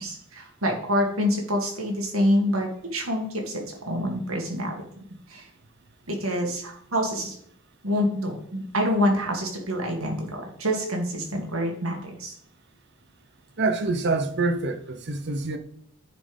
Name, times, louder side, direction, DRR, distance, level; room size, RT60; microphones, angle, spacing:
voice 1, 0.0-4.8 5.3-5.5 6.1-7.4 7.8-12.4, equal, 75° right, 2.1 m, -26 dB
voice 2, 13.6-15.6, right 3 dB, 55° right, 0.8 m, -26 dB
9.5 x 4.4 x 5.3 m
head